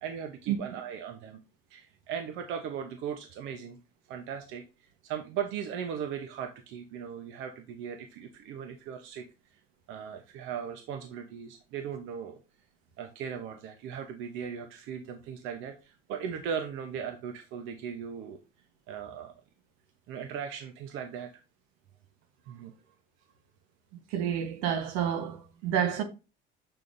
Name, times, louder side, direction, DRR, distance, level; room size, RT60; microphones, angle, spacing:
voice 1, 0.0-1.4 1.7-3.8 4.1-9.3 9.5-9.6 9.9-12.4 13.0-18.4 18.9-19.3 20.1-21.3 22.5-22.7, right 7 dB, 70° right, 0.8 m, -38 dB
voice 2, 24.1-26.0, right 9 dB, 85° right, 1.1 m, -29 dB
6.9 x 5.5 x 2.6 m
cardioid pair, 110°, 21 cm